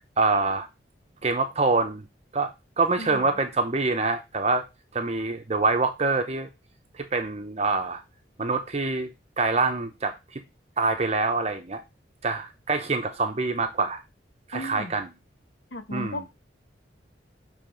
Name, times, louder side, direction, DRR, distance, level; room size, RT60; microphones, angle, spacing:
voice 1, 0.2-0.7 1.2-2.1 2.3-4.6 4.9-6.5 6.9-8.0 8.4-10.4 10.8-11.8 12.2-14.0 14.5-15.1 15.9-16.2, right 3 dB, 35° right, 0.7 m, -25 dB
voice 2, 3.0-3.3 14.5-15.0 15.7-16.3, left 1 dB, 70° left, 1.1 m, -35 dB
6.6 x 3.4 x 5.2 m
head